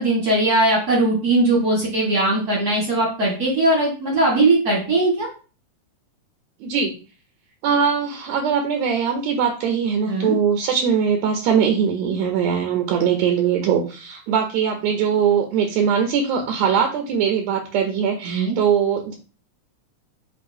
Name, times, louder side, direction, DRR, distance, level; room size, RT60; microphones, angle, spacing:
voice 1, 0.0-5.3 10.1-10.4 18.2-18.6, right 2 dB, 50° right, -3 dB, 1.1 m, -19 dB
voice 2, 6.6-6.9 7.6-19.1, right 7 dB, 80° right, 3 dB, 1.7 m, -21 dB
7.3 x 2.6 x 2.6 m, 0.35 s
omnidirectional pair, 3.5 m